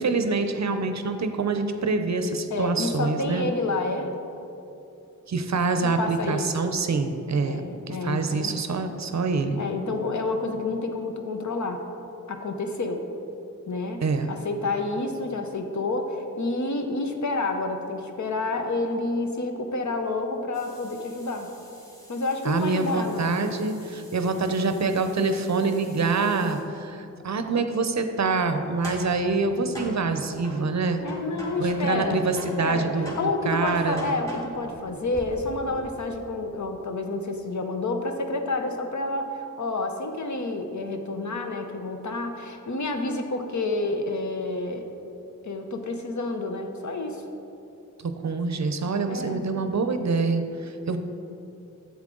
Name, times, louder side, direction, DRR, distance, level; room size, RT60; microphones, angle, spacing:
voice 1, 0.0-3.5 5.3-9.6 14.0-14.3 22.4-27.0 27.2-31.0 31.6-34.1 48.0-51.0, right 4 dB, 55° right, 8 dB, 0.6 m, -26 dB
voice 2, 2.5-4.1 5.8-6.5 7.4-8.5 9.6-11.8 12.3-13.0 13.7-21.5 22.1-23.5 31.0-32.3 32.6-44.8 45.4-47.2 49.1-49.7, left 2 dB, 60° left, 5 dB, 0.8 m, -29 dB
sound 1, 20.5-26.6 28.5-32.1 32.4-36.0, equal, 10° left, 1.8 m, -44 dB
7.3 x 7.3 x 3.8 m, 2.8 s
cardioid pair, 55°, 33 cm